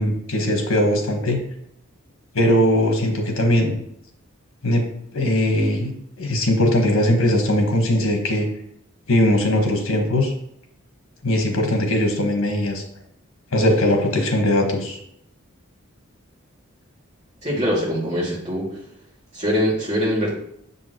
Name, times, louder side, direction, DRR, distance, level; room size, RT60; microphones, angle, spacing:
voice 1, 0.0-1.4 2.3-3.8 4.6-4.8 5.1-8.5 9.1-10.3 11.2-12.8 13.5-15.0, left 1 dB, 85° left, 3 dB, 1.4 m, -20 dB
voice 2, 17.4-18.8 19.3-20.3, equal, 35° right, -6 dB, 2.5 m, -23 dB
7.0 x 5.6 x 3.0 m, 0.74 s
head